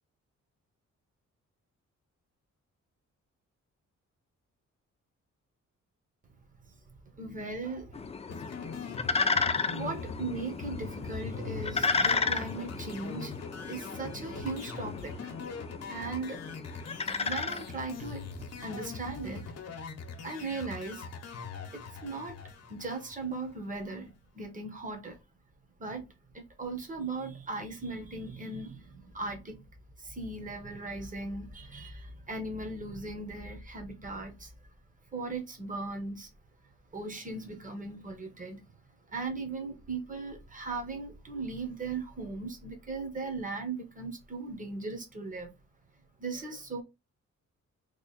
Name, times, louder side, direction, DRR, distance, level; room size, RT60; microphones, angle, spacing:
voice 1, 7.1-8.1 9.7-13.3 13.7-15.4 15.9-16.6 17.2-19.5 20.2-21.0 22.0-22.4 22.7-25.2 25.8-26.0 26.3-29.6 30.0-34.5 35.1-36.3 36.9-38.6 39.1-45.5 46.2-46.8, right 3 dB, 25° right, 1.2 m, -38 dB
sound 1, 7.9-18.3, left 4 dB, 20° left, 0.4 m, -33 dB
sound 2, 8.3-23.6, left 5 dB, 60° left, 1.0 m, -42 dB
3.3 x 2.4 x 4.1 m
cardioid pair, 110°, 29 cm